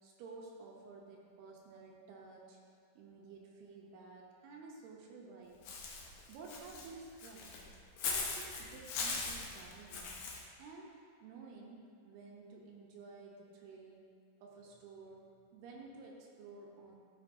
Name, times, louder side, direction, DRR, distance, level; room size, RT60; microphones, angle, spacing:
voice 1, 0.0-2.6 3.0-5.6 6.3-7.6 8.0-10.3 10.6-14.1 14.4-17.0, right 4 dB, 75° right, -1 dB, 2.7 m, -53 dB
Walk footsteps / Bird, 5.6-10.4, left 4 dB, 75° left, 2.0 m, -40 dB
14.5 x 6.2 x 2.6 m, 2.3 s
omnidirectional pair, 4.9 m